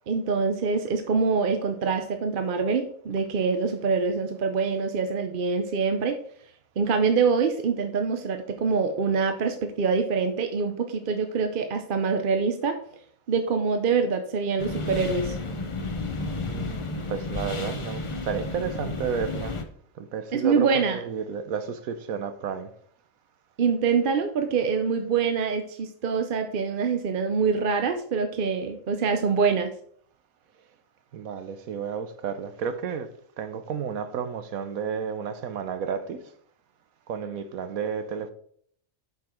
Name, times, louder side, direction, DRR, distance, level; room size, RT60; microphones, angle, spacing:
voice 1, 0.1-6.2 6.8-12.8 13.3-15.4 20.3-21.0 23.6-29.7, right 5 dB, 50° right, 0.7 m, -25 dB
sound 1, 14.6-19.6, left 3 dB, 30° left, 0.7 m, -32 dB
voice 2, 16.5-19.5 20.0-22.7 31.1-33.1 33.4-36.2 37.1-38.3, right 6 dB, 90° right, 1.3 m, -32 dB
7.8 x 5.9 x 4.4 m
omnidirectional pair, 1.4 m